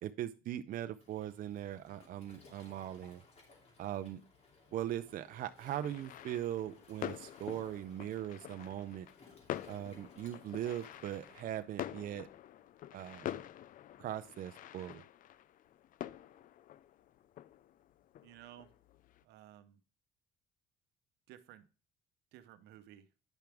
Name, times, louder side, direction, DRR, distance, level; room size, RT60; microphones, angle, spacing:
voice 1, 0.0-3.2 3.8-4.2 4.7-9.1 9.7-12.3 12.9-13.3 14.0-15.0, right 11 dB, 55° right, 0.5 m, -40 dB
Waves surf, 1.0-11.4, left 3 dB, 40° left, 2.8 m, -62 dB
sound 1, 5.8-19.2, left 12 dB, 55° left, 0.4 m, -47 dB
voice 2, 18.2-18.7 19.2-19.8 21.3-21.7 22.3-23.1, right 12 dB, 85° right, 0.8 m, -55 dB
9.1 x 5.8 x 3.4 m
cardioid pair, 110°, 17 cm